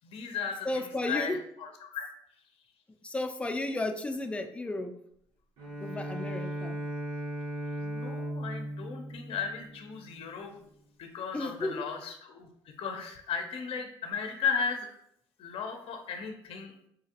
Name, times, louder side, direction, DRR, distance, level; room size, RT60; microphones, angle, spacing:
voice 1, 0.0-2.1 7.8-10.6 11.0-12.5 12.8-14.9 15.4-16.7, left 6 dB, 60° left, 4 dB, 0.5 m, -35 dB
voice 2, 0.6-1.4 3.0-4.9 5.8-6.8 11.3-11.9, left 2 dB, 10° left, 5 dB, 0.4 m, -33 dB
Bowed string instrument, 5.6-10.2, right 1 dB, 85° right, 1.2 m, -37 dB
3.9 x 2.4 x 2.7 m, 0.73 s
supercardioid pair, 75°, 11 cm